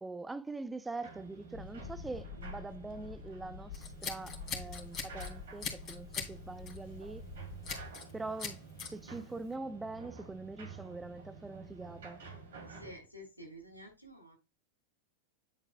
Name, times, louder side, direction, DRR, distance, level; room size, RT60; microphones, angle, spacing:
voice 1, 0.0-7.2 8.1-12.2, right 3 dB, 10° right, 0.5 m, -43 dB
sound 1, 1.0-13.0, right 5 dB, 60° right, 2.7 m, -50 dB
sound 2, 1.5-8.0, left 7 dB, 50° left, 0.5 m, -48 dB
Scissors, 3.7-5.3 5.6-6.3 6.7-6.9 7.6-8.1 8.4-8.9, left 6 dB, 30° left, 3.1 m, -40 dB
voice 2, 12.7-14.4, equal, 90° left, 2.8 m, -50 dB
11.0 x 4.7 x 2.2 m
figure-of-eight pair, 90°, 0 cm